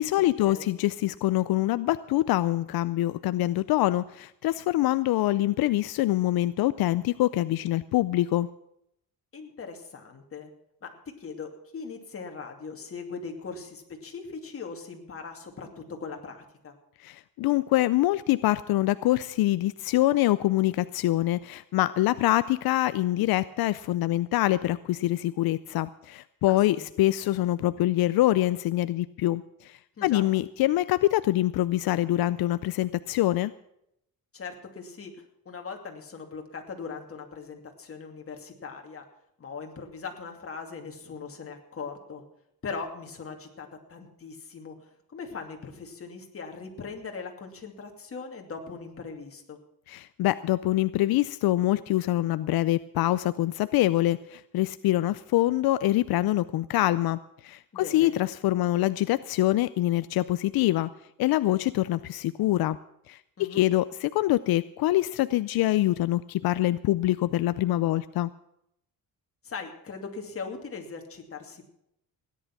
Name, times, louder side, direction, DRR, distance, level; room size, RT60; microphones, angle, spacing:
voice 1, 0.0-8.5 17.0-33.5 49.9-60.9 61.2-62.8 63.1-68.3, left 15 dB, 85° left, 15 dB, 0.5 m, -25 dB
voice 2, 9.3-10.5 10.8-10.9 11.2-16.7 26.5-26.9 30.0-30.2 34.3-35.1 35.5-39.0 39.4-42.2 42.6-49.6 57.7-58.1 63.4-63.7 69.4-71.7, left 5 dB, 40° left, 3 dB, 2.6 m, -40 dB
17.0 x 10.5 x 6.0 m, 0.78 s
cardioid pair, 130°, 36 cm